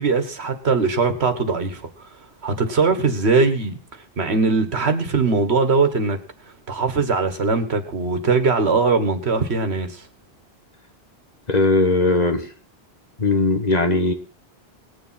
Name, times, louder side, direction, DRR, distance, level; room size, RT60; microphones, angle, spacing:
voice 1, 0.0-1.9 2.4-3.8 4.2-6.2 6.7-10.0, right 4 dB, 80° right, 9 dB, 1.8 m, -20 dB
voice 2, 11.5-12.5 13.2-14.1, left 2 dB, 40° left, 6 dB, 1.6 m, -19 dB
19.0 x 7.1 x 5.7 m, 0.35 s
omnidirectional pair, 1.1 m